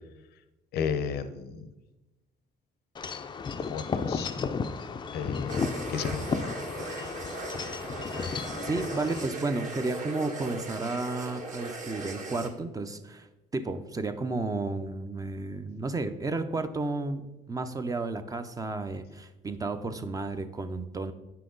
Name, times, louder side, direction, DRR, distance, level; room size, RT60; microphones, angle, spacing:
voice 1, 0.7-1.7 3.7-4.3 5.1-5.6 5.9-6.5, left 7 dB, 70° left, 11 dB, 0.7 m, -33 dB
Wind chime / Wind, 3.0-9.3, left 5 dB, 25° left, 0.4 m, -33 dB
sound 1, 5.5-12.5, right 3 dB, 45° right, 1.4 m, -38 dB
voice 2, 8.7-13.3 13.5-21.1, right 3 dB, 20° right, 9 dB, 0.5 m, -32 dB
9.3 x 5.8 x 3.8 m, 1.1 s
cardioid pair, 110°, 17 cm